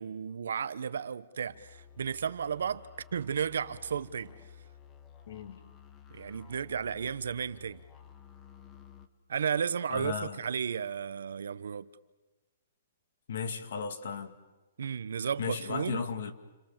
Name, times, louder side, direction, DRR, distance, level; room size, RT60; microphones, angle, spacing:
voice 1, 0.0-4.3 6.1-7.8 9.3-11.9 14.8-16.1, right 7 dB, 85° right, 1.1 m, -33 dB
sound 1, 1.5-9.1, left 9 dB, 15° left, 1.3 m, -53 dB
voice 2, 5.3-5.6 9.9-10.4 13.3-14.3 15.4-16.3, left 6 dB, 65° left, 2.3 m, -35 dB
30.0 x 26.0 x 7.4 m
hypercardioid pair, 170°, 0 cm